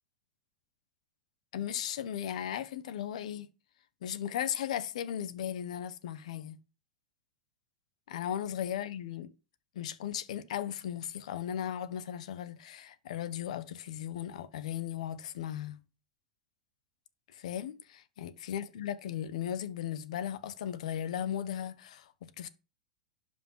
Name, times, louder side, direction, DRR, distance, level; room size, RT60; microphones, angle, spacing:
voice 1, 1.5-3.5 4.0-6.6 8.1-9.3 9.7-15.8 17.3-22.5, left 10 dB, 80° left, 1.3 m, -36 dB
11.5 x 5.2 x 5.7 m
supercardioid pair, 130°, 4 cm